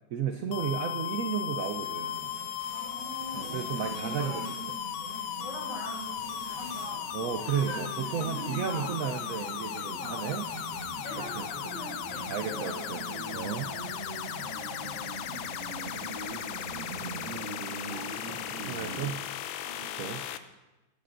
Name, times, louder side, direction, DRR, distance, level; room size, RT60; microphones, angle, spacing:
voice 1, 0.1-2.3 3.3-4.4 7.1-10.5 11.3-11.4 12.3-13.0 13.3-13.7 17.0-17.4 18.7-19.3 20.0-20.2, right 7 dB, 85° right, 6 dB, 0.7 m, -33 dB
sound 1, 0.5-20.4, left 10 dB, 85° left, 1.4 m, -37 dB
sound 2, 1.6-19.1, right 4 dB, 50° right, 1.2 m, -42 dB
voice 2, 2.7-4.5 5.4-7.1 7.4-7.8 8.2-8.9 10.0-10.2 11.0-13.0 13.6-13.8 14.4-16.9 17.8-18.4 19.6-19.9, equal, 70° left, -3 dB, 4.7 m, -45 dB
17.5 x 10.5 x 2.6 m, 1.0 s
omnidirectional pair, 2.2 m